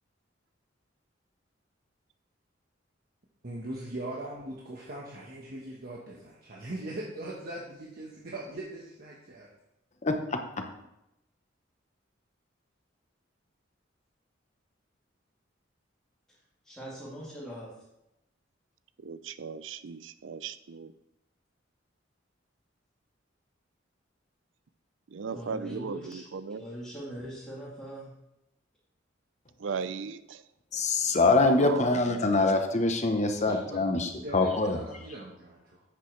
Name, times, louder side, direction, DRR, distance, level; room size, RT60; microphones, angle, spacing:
voice 1, 3.4-9.5 33.4-35.8, right 1 dB, 50° right, -3 dB, 1.3 m, -40 dB
voice 2, 10.0-10.4 30.7-34.8, left 2 dB, 40° left, 5 dB, 1.0 m, -24 dB
voice 3, 16.6-17.7 25.3-26.2 26.6-28.1, equal, 5° left, -11 dB, 3.0 m, -41 dB
voice 4, 19.0-20.9 25.1-26.6 29.6-30.4 31.6-31.8, right 5 dB, 75° right, 14 dB, 0.5 m, -36 dB
9.8 x 8.3 x 3.3 m, 0.86 s
head